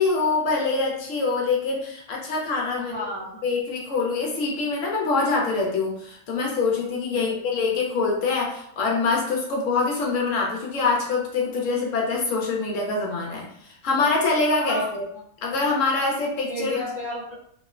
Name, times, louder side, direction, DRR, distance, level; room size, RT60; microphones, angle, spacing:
voice 1, 0.0-2.9 3.4-15.1 15.4-16.8, left 4 dB, 75° left, -1 dB, 1.0 m, -24 dB
voice 2, 2.8-3.4 7.1-7.5 14.6-14.9 16.5-17.4, left 1 dB, 50° right, -8 dB, 0.5 m, -33 dB
2.9 x 2.0 x 2.3 m, 0.68 s
omnidirectional pair, 1.4 m